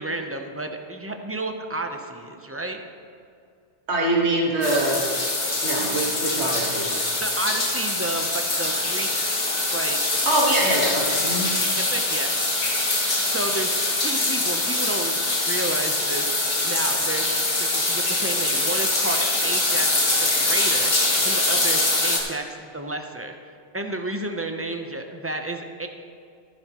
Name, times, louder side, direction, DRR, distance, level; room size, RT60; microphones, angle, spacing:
voice 1, 0.0-2.8 7.2-9.1 9.7-10.0 11.0-11.2 11.9-12.3 13.2-15.2 15.5-20.9 21.2-23.3 23.7-25.9, right 2 dB, 15° right, 4 dB, 0.6 m, -31 dB
voice 2, 3.9-5.0 5.6-6.9 10.3-11.5, right 1 dB, 80° right, -2 dB, 1.9 m, -23 dB
sound 1, 4.6-22.2, left 2 dB, 60° left, 1.9 m, -23 dB
15.0 x 10.0 x 3.0 m, 2.4 s
omnidirectional pair, 1.1 m